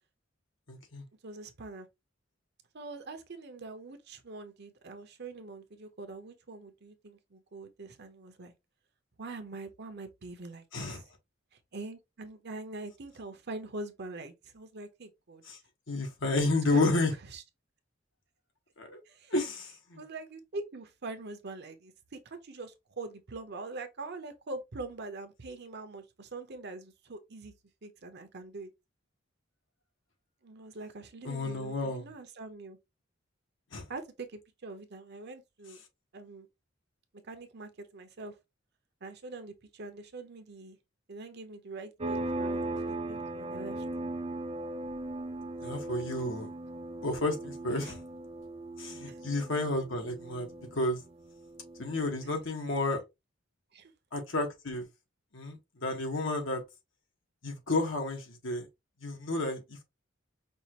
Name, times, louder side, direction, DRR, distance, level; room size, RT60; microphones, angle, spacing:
voice 1, 0.7-1.0 10.7-11.0 15.5-15.6 15.9-17.1 18.8-19.0 19.3-20.0 31.2-32.1 33.7-33.9 45.6-46.5 47.0-48.0 48.8-51.0 51.8-53.0 54.1-54.9 55.3-56.6 57.4-58.7 59.0-59.8, left 2 dB, 70° left, 1.5 m, -31 dB
voice 2, 1.2-1.9 2.7-8.5 9.2-11.0 11.7-15.4 16.7-16.9 17.3-17.4 19.1-19.3 20.0-27.5 27.8-28.7 30.4-32.8 33.9-35.8 36.1-36.5 37.2-38.3 39.0-40.8 41.1-43.9 47.8-47.9 49.1-49.2 53.7-53.9, right 3 dB, 60° right, 0.9 m, -44 dB
sound 1, 42.0-52.3, right 2 dB, 30° right, 0.5 m, -38 dB
5.4 x 2.5 x 3.0 m
head